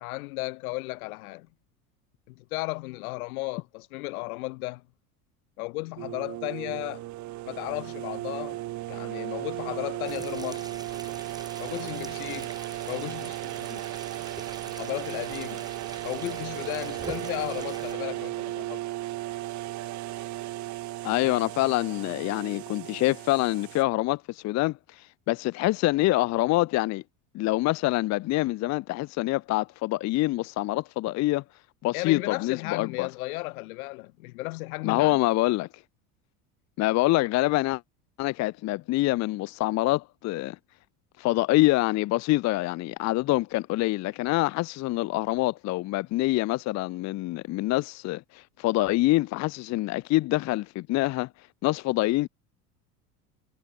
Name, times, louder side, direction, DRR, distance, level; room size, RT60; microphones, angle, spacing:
voice 1, 0.0-1.5 2.3-4.8 5.6-7.0 7.4-8.6 8.9-10.7 11.6-12.5 12.9-13.8 14.6-15.7 16.0-18.8 31.9-35.2, left 23 dB, 75° left, 1.1 m, -35 dB
sound 1, 6.0-23.8, right 16 dB, 40° right, 0.7 m, -36 dB
sound 2, 10.0-17.9, right 2 dB, 10° right, 3.2 m, -45 dB
voice 2, 21.0-27.0 27.3-31.4 31.8-33.1 34.8-35.7 36.8-37.8 38.2-40.6 41.2-51.3 51.6-52.3, left 18 dB, 40° left, 0.5 m, -26 dB
hypercardioid pair, 85°, 43 cm